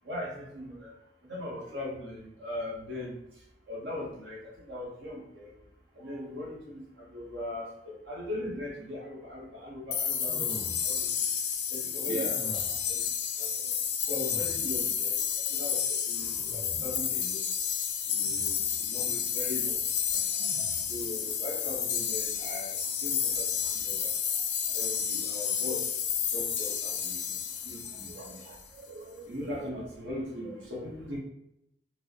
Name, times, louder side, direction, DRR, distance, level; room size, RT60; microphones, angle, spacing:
voice 1, 0.0-0.9 1.3-3.2 3.7-5.5 5.9-11.1 11.7-12.6 12.9-13.0 13.4-13.5 14.1-15.2 15.5-17.4 18.1-19.8 20.1-20.2 20.9-24.1 24.7-25.8 26.3-27.4 27.6-28.5 29.2-31.2, left 1 dB, 90° right, -3 dB, 1.2 m, -39 dB
sound 1, 9.9-28.6, left 7 dB, 70° left, 0.4 m, -31 dB
sound 2, 10.2-11.2 12.3-13.0 14.1-15.0 16.1-17.1 18.2-18.8 20.3-21.1, equal, 70° right, 1.3 m, -46 dB
voice 2, 12.1-12.4 13.6-13.8 15.4-15.5 20.3-20.7 27.9-29.9, right 2 dB, 45° right, 1 dB, 0.3 m, -42 dB
4.5 x 2.1 x 2.9 m, 0.79 s
head